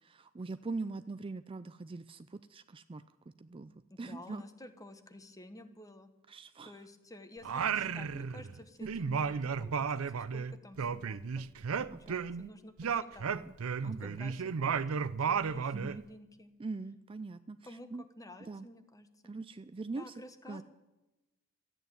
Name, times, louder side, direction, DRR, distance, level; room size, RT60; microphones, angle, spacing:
voice 1, 0.0-3.0 3.4-4.4 6.3-6.8 7.8-7.9 8.8-8.9 11.9-12.3 13.3-13.6 13.8-14.2 15.7-16.0 16.6-18.0 18.4-18.7 19.2-20.6, right 3 dB, 25° right, 12 dB, 0.4 m, -42 dB
voice 2, 3.9-6.1 6.6-9.9 10.1-11.5 11.8-13.3 13.8-16.5 17.7-17.9 18.2-19.3 20.0-20.6, left 1 dB, 15° left, 9 dB, 1.2 m, -52 dB
Singing, 7.4-8.6 8.9-12.5 12.8-16.0, right 6 dB, 75° right, 0.5 m, -33 dB
13.5 x 9.0 x 9.2 m, 1.0 s
head